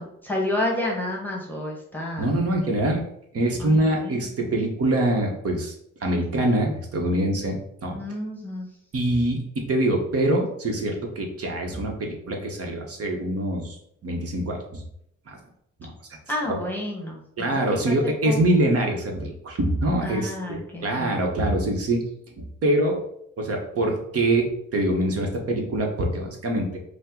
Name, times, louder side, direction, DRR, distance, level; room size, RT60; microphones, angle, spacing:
voice 1, 0.0-2.4 3.6-4.3 7.9-8.7 16.3-18.0 18.2-18.4 20.0-21.1, left 1 dB, 5° left, -2 dB, 1.3 m, -30 dB
voice 2, 2.2-3.0 3.3-5.7 6.0-7.6 7.8-8.0 8.9-13.8 14.0-14.8 15.3-15.4 15.8-15.9 16.5-16.6 17.4-22.0 22.4-23.0 23.4-26.8, right 1 dB, 50° right, 1 dB, 1.2 m, -24 dB
5.3 x 2.2 x 3.8 m, 0.73 s
cardioid pair, 90°, 30 cm